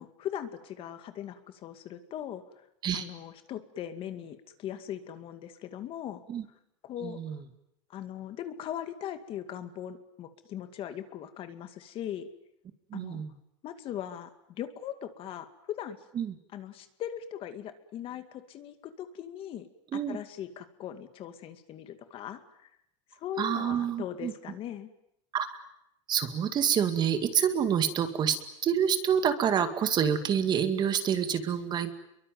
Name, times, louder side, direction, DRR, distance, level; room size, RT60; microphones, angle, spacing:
voice 1, 0.0-2.6 2.9-6.2 6.8-7.2 7.9-12.3 12.9-13.2 13.6-14.3 14.6-16.0 16.5-19.7 20.1-22.7 23.2-24.9, left 10 dB, 35° left, 9 dB, 2.2 m, -39 dB
voice 2, 7.0-7.4 12.9-13.3 16.2-16.3 19.9-20.2 23.4-24.3 25.3-25.6 26.1-31.9, right 8 dB, 25° right, 9 dB, 2.2 m, -27 dB
27.5 x 23.0 x 9.4 m, 0.79 s
supercardioid pair, 150°, 16 cm